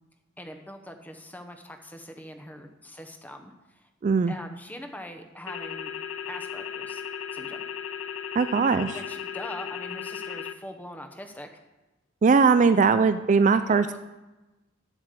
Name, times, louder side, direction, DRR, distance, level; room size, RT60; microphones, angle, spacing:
voice 1, 0.4-3.9 4.3-5.9 6.3-7.0 7.3-7.6 8.9-11.5 13.7-14.0, equal, 10° left, 6 dB, 0.9 m, -42 dB
voice 2, 4.0-4.3 8.4-9.0 12.2-13.9, right 5 dB, 40° right, 11 dB, 0.3 m, -20 dB
sound 1, 5.5-10.5, left 8 dB, 80° left, 0.5 m, -36 dB
8.9 x 7.4 x 6.7 m, 1.1 s
head